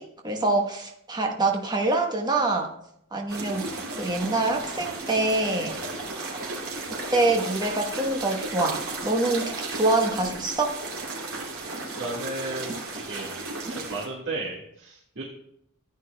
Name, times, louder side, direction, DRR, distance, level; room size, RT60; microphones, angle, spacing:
voice 1, 0.0-2.7 3.1-3.6 4.0-5.7 7.1-10.8, right 2 dB, 20° right, 2 dB, 1.1 m, -25 dB
sound 1, 3.3-14.1, right 3 dB, 80° right, 3.0 m, -34 dB
voice 2, 12.0-13.3 13.7-15.2, right 2 dB, 60° right, -4 dB, 1.9 m, -34 dB
15.0 x 9.1 x 2.3 m, 0.75 s
head